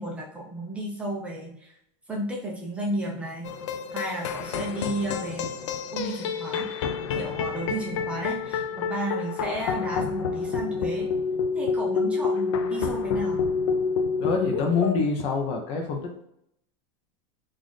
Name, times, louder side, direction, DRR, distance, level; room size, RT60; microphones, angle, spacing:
voice 1, 0.0-1.7 2.1-3.5 3.9-5.5 5.9-6.7 7.1-11.1 11.5-13.4, right 1 dB, 10° right, -3 dB, 0.5 m, -33 dB
sound 1, 3.4-15.0, left 5 dB, 90° left, 0.4 m, -28 dB
voice 2, 14.2-16.3, left 4 dB, 35° left, 3 dB, 0.6 m, -26 dB
3.9 x 2.5 x 3.1 m, 0.76 s
supercardioid pair, 160°, 15 cm